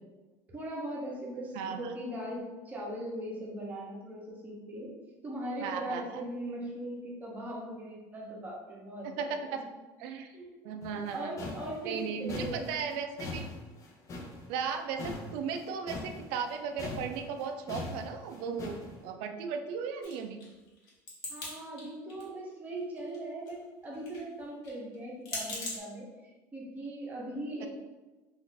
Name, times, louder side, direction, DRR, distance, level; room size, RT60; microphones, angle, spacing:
voice 1, 0.5-4.9 5.2-9.5 10.3-10.5 10.9-12.7 21.3-27.7, right 1 dB, 20° right, -3 dB, 0.9 m, -39 dB
voice 2, 1.5-1.9 5.6-6.2 9.2-9.6 10.0-10.3 10.6-11.3 11.9-13.5 14.5-20.4, right 6 dB, 80° right, 6 dB, 0.4 m, -36 dB
sound 1, 10.8-16.5 16.8-19.0, left 3 dB, 40° left, 0.6 m, -41 dB
sound 2, 20.0-21.5 21.8-22.5 22.8-25.8, left 2 dB, 60° left, 1.2 m, -40 dB
2.6 x 2.5 x 3.7 m, 1.2 s
cardioid pair, 125°, 8 cm